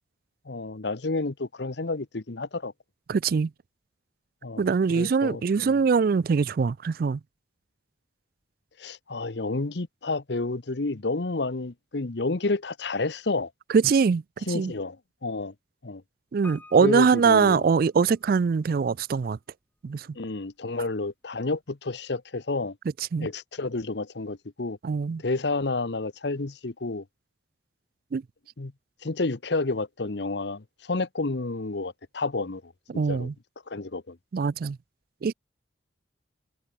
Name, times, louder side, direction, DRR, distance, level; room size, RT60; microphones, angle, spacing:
voice 1, 0.5-2.7 4.4-4.6 4.9-5.7 8.8-13.5 14.5-15.0 15.2-15.5 15.8-16.0 16.8-17.6 20.2-22.8 23.2-24.8 25.2-27.0 28.6-28.7 29.0-33.3 33.7-34.2, left 3 dB, 65° left, 1.0 m, -30 dB
voice 2, 3.1-3.5 4.6-7.2 13.7-14.7 16.3-19.4 19.8-20.1 23.1-23.3 24.8-25.2 28.1-28.2 32.9-33.3 34.3-34.8 35.2-35.3, right 5 dB, 50° right, 0.3 m, -23 dB
Piano, 16.4-18.5 18.7-18.8, left 2 dB, 10° left, 1.7 m, -50 dB
head